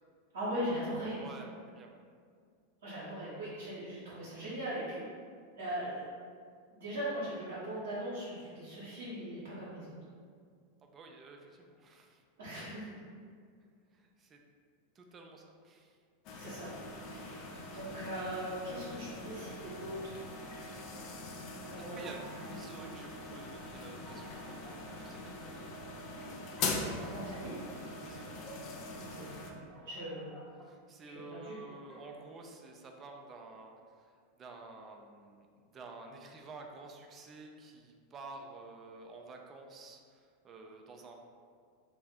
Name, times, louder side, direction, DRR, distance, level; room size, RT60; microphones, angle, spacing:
voice 1, 0.3-1.2 2.8-5.0 5.5-6.0 6.7-9.9 12.4-13.0 16.3-20.2 20.6-20.7 21.6-22.1 27.0-27.5 28.9-30.4 31.0-31.6, equal, 65° right, -10 dB, 0.8 m, -40 dB
voice 2, 1.2-1.9 3.0-3.3 10.8-12.2 13.9-14.4 14.9-16.0 21.8-25.7 28.0-28.5 30.6-41.1, right 3 dB, 30° right, 2 dB, 0.4 m, -51 dB
sound 1, 16.2-29.5, left 3 dB, 45° left, 0.3 m, -42 dB
sound 2, 21.7-22.9 23.5-23.6 23.9-25.0 25.5-25.7 26.2-27.7 28.2-28.9 29.4-30.7 31.2-32.3, right 1 dB, 5° left, 0.8 m, -54 dB
2.5 x 2.1 x 3.5 m, 2.1 s
figure-of-eight pair, 90°, 0 cm